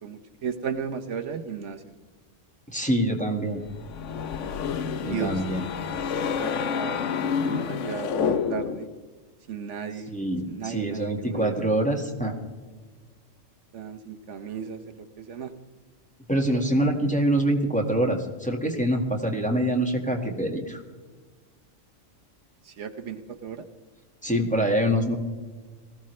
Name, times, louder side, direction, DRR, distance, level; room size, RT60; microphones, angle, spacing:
voice 1, 0.0-1.8 5.0-5.4 6.1-8.9 9.5-10.1 10.5-11.6 13.7-15.5 22.6-23.6, right 6 dB, 70° right, 7 dB, 1.1 m, -35 dB
voice 2, 2.7-3.6 5.0-5.7 10.1-12.3 16.3-20.8 24.2-25.2, right 1 dB, 5° left, 1 dB, 1.5 m, -25 dB
sound 1, 3.7-8.9, left 6 dB, 75° left, 1.1 m, -29 dB
20.0 x 15.0 x 3.2 m, 1.4 s
omnidirectional pair, 1.3 m